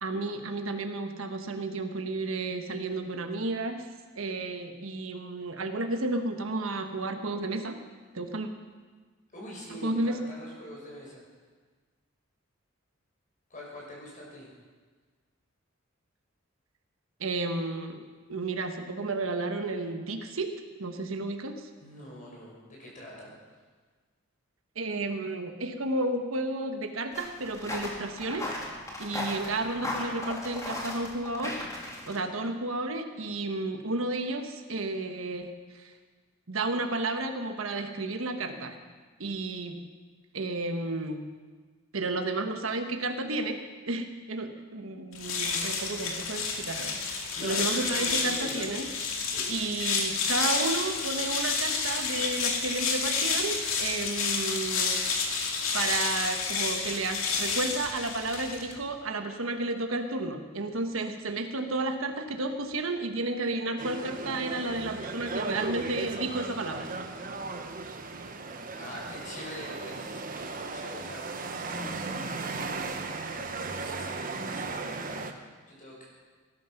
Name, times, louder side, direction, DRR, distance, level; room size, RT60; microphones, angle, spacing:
voice 1, 0.0-3.9 4.1-7.8 8.1-8.5 9.8-10.2 17.2-18.0 18.3-20.5 20.8-21.7 24.7-28.5 29.0-31.8 32.1-35.9 36.5-38.8 39.2-39.8 40.3-41.3 41.9-43.6 43.9-55.4 55.7-66.9, right 2 dB, 85° right, 6 dB, 1.3 m, -32 dB
voice 2, 9.3-11.2 13.5-14.5 21.8-23.6 29.4-29.7 47.3-48.7 49.2-49.6 68.8-76.1, equal, 40° left, -3 dB, 5.4 m, -44 dB
sound 1, 27.1-32.2, left 2 dB, 15° left, 2.7 m, -36 dB
sound 2, 45.1-58.8, left 5 dB, 90° left, 2.2 m, -30 dB
sound 3, 63.8-75.3, right 3 dB, 45° right, 1.1 m, -36 dB
19.0 x 11.5 x 5.9 m, 1.4 s
head